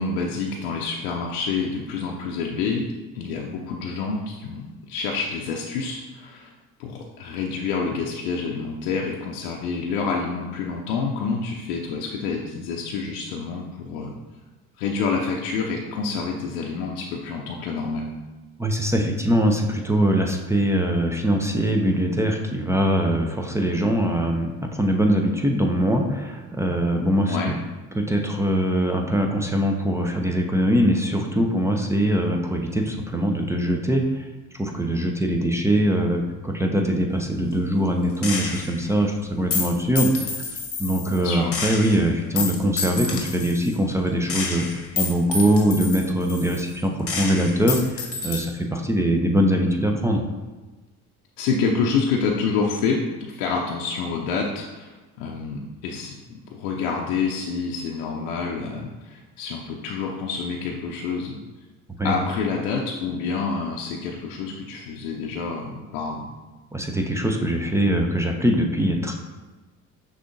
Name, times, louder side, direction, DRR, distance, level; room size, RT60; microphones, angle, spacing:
voice 1, 0.0-2.9 3.1-6.5 6.8-14.1 14.8-18.1 27.3-27.5 41.2-41.6 51.4-61.4 62.0-66.3, left 5 dB, 75° left, -1 dB, 0.6 m, -28 dB
voice 2, 18.6-27.5 28.0-34.3 34.6-40.4 40.8-44.7 44.9-50.2 62.0-62.1 66.7-69.1, right 1 dB, 5° right, 2 dB, 0.4 m, -22 dB
Gunshot gunfire, 38.2-38.8 39.5-41.2 41.5-43.7 44.3-46.8 47.1-48.4, left 4 dB, 35° left, 0.9 m, -29 dB
6.1 x 2.8 x 2.6 m, 1.2 s
hypercardioid pair, 60°, 43 cm